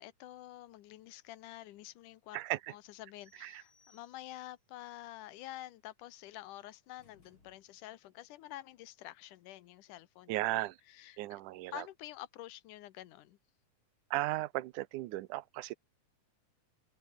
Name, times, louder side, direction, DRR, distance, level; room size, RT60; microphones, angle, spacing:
voice 1, 0.0-2.4 2.7-11.4 11.7-13.4, left 15 dB, 90° left, 2.5 m, -49 dB
sound 1, 3.2-4.7, left 4 dB, 70° left, 8.4 m, -69 dB
sound 2, 7.0-8.2, left 3 dB, 40° left, 6.5 m, -68 dB
voice 2, 10.3-10.8 11.2-11.8 14.1-15.8, right 17 dB, 90° right, 2.3 m, -35 dB
omnidirectional pair, 3.5 m